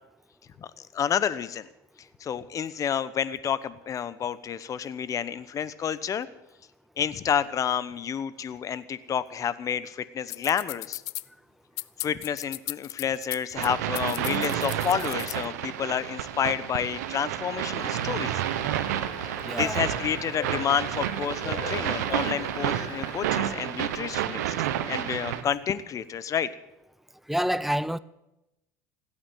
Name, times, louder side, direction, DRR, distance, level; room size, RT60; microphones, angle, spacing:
voice 1, 0.6-1.7 2.2-6.3 7.0-11.0 12.0-18.4 19.6-24.5 24.9-26.5, left 8 dB, 40° left, 1.0 m, -29 dB
sound 1, 10.3-11.2 11.8-13.7 14.0-15.5, left 24 dB, 75° left, 0.4 m, -36 dB
sound 2, 13.5-25.4, right 11 dB, 85° right, 1.2 m, -30 dB
sound 3, 17.8-23.4, left 6 dB, 55° left, 3.0 m, -42 dB
voice 2, 19.4-19.8 27.3-28.0, equal, 5° right, 0.6 m, -27 dB
16.0 x 8.8 x 9.0 m
hypercardioid pair, 90°, 9 cm